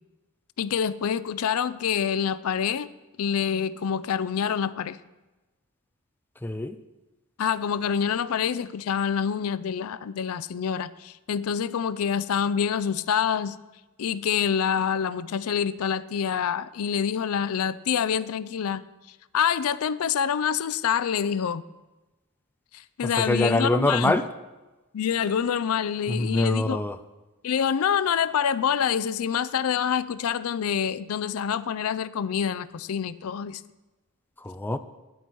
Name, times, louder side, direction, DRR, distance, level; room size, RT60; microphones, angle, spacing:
voice 1, 0.6-2.9 3.2-5.0 7.4-13.6 14.0-18.9 19.3-21.6 22.7-24.2 24.9-26.8 27.4-33.6, left 7 dB, 70° left, 0.4 m, -26 dB
voice 2, 6.4-6.8 23.0-24.2 26.1-27.0 34.4-34.8, left 1 dB, 10° left, 0.4 m, -24 dB
12.5 x 9.6 x 4.6 m
head